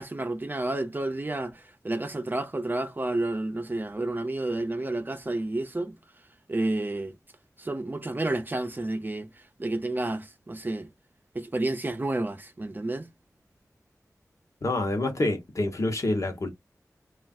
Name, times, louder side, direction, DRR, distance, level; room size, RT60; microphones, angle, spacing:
voice 1, 0.0-6.0 6.5-7.2 7.6-10.9 11.3-13.1, right 2 dB, 30° right, 0.6 m, -30 dB
voice 2, 14.6-16.5, left 2 dB, 60° left, 1.0 m, -27 dB
3.2 x 2.4 x 2.4 m
wide cardioid pair, 75°, 6 cm